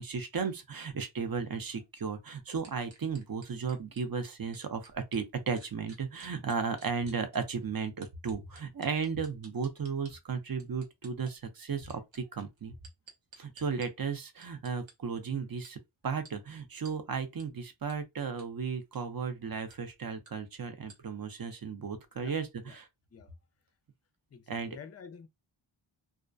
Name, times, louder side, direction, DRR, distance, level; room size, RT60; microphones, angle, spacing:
voice 1, 0.0-12.7 13.4-22.9 24.5-24.8, right 5 dB, 45° right, 0.6 m, -35 dB
sound 1, 2.6-5.2 5.6-7.4 8.0-10.1 10.6-11.3 11.8-13.9 14.4-14.9 15.6-15.7 16.3-16.4 16.9-17.0 17.4-17.5 17.9-18.0 18.4-18.5 18.8-19.0 19.7-19.8 20.3-20.4 20.9-21.0, right 4 dB, 65° right, 0.9 m, -54 dB
voice 2, 24.3-25.3, left 6 dB, 35° left, 0.4 m, -49 dB
2.3 x 2.1 x 2.4 m
wide cardioid pair, 45°, 49 cm